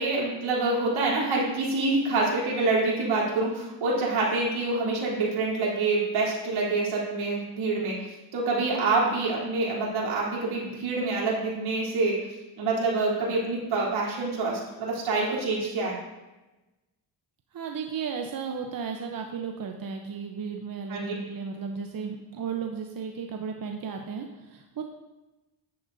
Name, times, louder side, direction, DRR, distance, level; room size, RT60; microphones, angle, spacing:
voice 1, 0.0-8.1 8.3-12.3 12.6-16.0 20.9-21.1, right 3 dB, 75° right, -5 dB, 3.6 m, -26 dB
voice 2, 17.5-24.8, right 6 dB, 45° right, 3 dB, 0.9 m, -34 dB
10.0 x 10.0 x 2.7 m, 1.1 s
cardioid pair, 85°, 49 cm